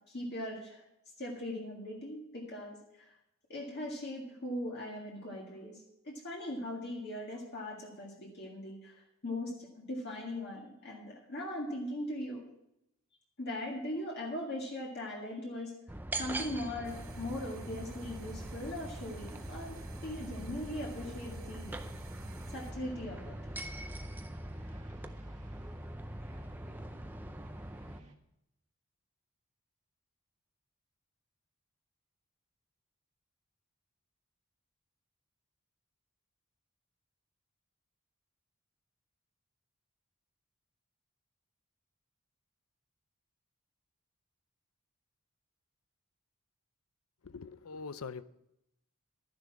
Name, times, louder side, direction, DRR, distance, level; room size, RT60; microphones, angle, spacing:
voice 1, 0.1-0.8 1.2-3.1 3.5-5.8 6.0-12.4 13.4-15.7 16.1-21.8 22.5-23.4, left 1 dB, 45° left, -2 dB, 1.9 m, -40 dB
sound 1, 15.9-28.0, right 1 dB, 10° right, 0.5 m, -43 dB
sound 2, 16.8-22.7, right 2 dB, 75° right, 2.2 m, -51 dB
sound 3, 22.6-28.1, right 1 dB, 35° right, 1.5 m, -56 dB
voice 2, 47.2-48.2, left 5 dB, 80° left, 15 dB, 0.6 m, -43 dB
12.5 x 10.5 x 4.7 m, 0.82 s
head